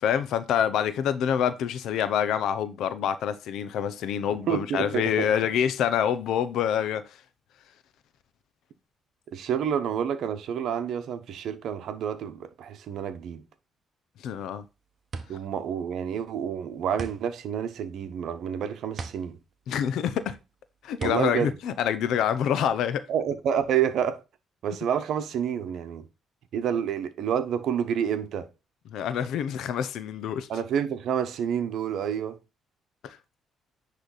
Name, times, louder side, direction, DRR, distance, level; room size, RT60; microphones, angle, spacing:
voice 1, 0.0-7.2 14.2-14.6 19.7-20.4 20.8-23.0 28.9-30.5 33.0-33.2, left 9 dB, 80° left, 0.7 m, -26 dB
voice 2, 4.5-5.3 9.3-13.4 15.3-19.4 21.0-21.6 23.1-24.2 24.6-26.0 26.5-28.5 30.5-32.4, right 8 dB, 75° right, 1.0 m, -28 dB
sound 1, 14.4-22.6, right 4 dB, 45° right, 1.1 m, -42 dB
9.9 x 3.3 x 4.0 m
cardioid pair, 90°, 0 cm